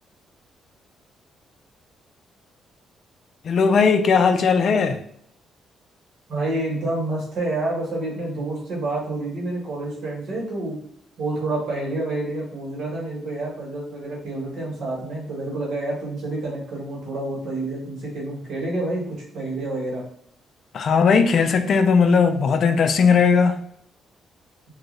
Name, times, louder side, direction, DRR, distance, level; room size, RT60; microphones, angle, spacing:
voice 1, 3.4-5.0 20.7-23.6, left 5 dB, 55° left, 0.4 m, -18 dB
voice 2, 6.3-10.8 11.2-19.0 19.3-20.0, right 2 dB, 70° right, 1.4 m, -28 dB
2.9 x 2.6 x 2.5 m
cardioid pair, 90°, 0 cm